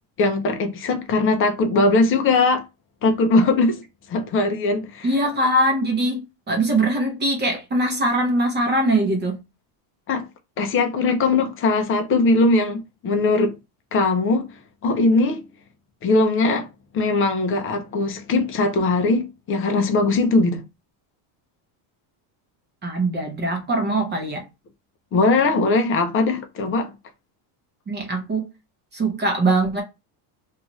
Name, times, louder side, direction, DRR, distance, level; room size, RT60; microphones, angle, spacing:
voice 1, 0.2-2.6 3.0-3.8 4.1-5.1 10.1-10.3 10.6-13.6 13.9-15.5 16.0-16.7 16.9-20.6 25.1-26.9, left 3 dB, 30° left, 0.4 m, -20 dB
voice 2, 5.0-9.4 22.8-24.5 27.9-28.5 28.9-29.8, right 1 dB, 20° right, 0.6 m, -22 dB
2.6 x 2.3 x 2.9 m
cardioid pair, 145°, 50 cm